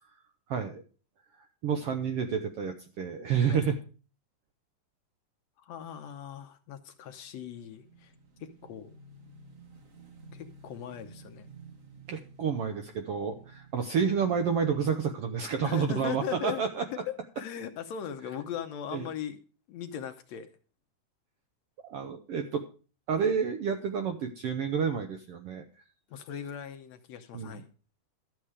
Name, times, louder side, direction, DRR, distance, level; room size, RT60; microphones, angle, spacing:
voice 1, 0.5-0.8 1.6-3.8 12.1-16.8 18.9-19.1 21.8-22.6 23.1-25.6 27.3-27.5, right 6 dB, 75° right, 6 dB, 1.4 m, -29 dB
voice 2, 5.6-8.1 8.4-8.9 10.3-11.5 15.6-16.6 17.1-19.4 19.7-20.5 26.1-27.7, left 9 dB, 70° left, 8 dB, 1.8 m, -39 dB
Motorcycle / Engine, 6.9-15.4, right 3 dB, 50° right, 1.0 m, -54 dB
12.5 x 7.7 x 4.8 m, 0.38 s
omnidirectional pair, 3.6 m